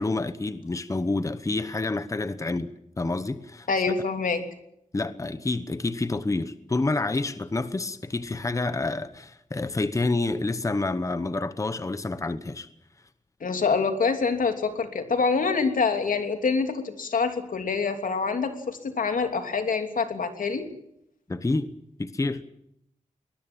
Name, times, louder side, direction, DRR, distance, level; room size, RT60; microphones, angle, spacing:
voice 1, 0.0-3.7 4.9-12.7 21.3-21.7 22.0-22.4, left 2 dB, 25° left, 1.0 m, -28 dB
voice 2, 3.7-4.4 13.4-20.7, left 4 dB, 85° left, 3.1 m, -26 dB
23.0 x 20.5 x 8.9 m
wide cardioid pair, 145°, 13 cm